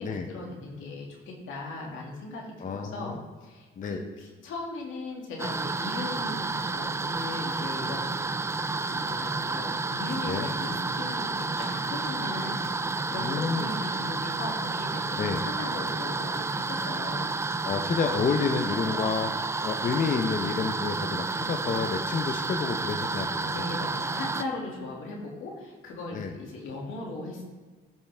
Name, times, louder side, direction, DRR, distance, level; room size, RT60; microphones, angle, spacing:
voice 1, 0.0-8.3 8.8-17.3 23.5-27.4, left 2 dB, 85° left, -2 dB, 2.2 m, -38 dB
voice 2, 2.6-3.2 3.8-4.0 10.2-10.5 13.2-13.7 15.1-15.4 17.6-19.3 19.6-23.7 26.1-26.3, left 5 dB, 40° left, 4 dB, 0.7 m, -29 dB
sound 1, 5.4-24.5, right 3 dB, 15° right, 0.3 m, -30 dB
13.5 x 5.6 x 3.5 m, 1.4 s
cardioid pair, 90°, 20 cm